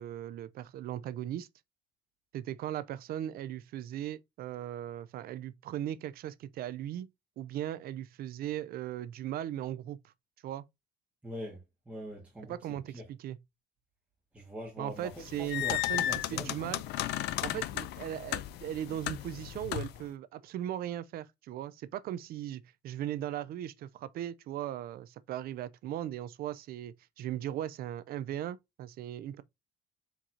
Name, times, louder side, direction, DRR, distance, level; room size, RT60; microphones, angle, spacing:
voice 1, 0.0-1.5 2.3-7.1 7.4-10.0 10.4-10.6 12.5-13.4 14.8-16.1 16.3-16.8 17.4-29.4, right 12 dB, 65° right, 0.5 m, -38 dB
voice 2, 11.2-13.0 14.3-16.6, equal, 10° right, 1.7 m, -43 dB
sound 1, 15.1-20.1, left 14 dB, 80° left, 0.4 m, -35 dB
4.6 x 3.8 x 2.7 m
cardioid pair, 110°, 17 cm